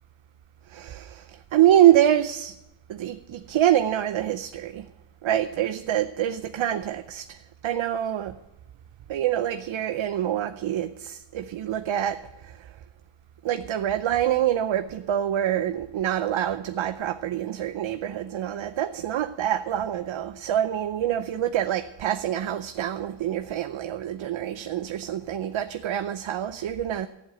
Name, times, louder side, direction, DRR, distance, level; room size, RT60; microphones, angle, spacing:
voice 1, 0.7-2.5 2.9-4.9 5.2-8.4 9.1-12.7 13.4-27.1, right 11 dB, 90° right, 0.7 m, -25 dB
14.5 x 7.9 x 9.1 m
wide cardioid pair, 160°, 46 cm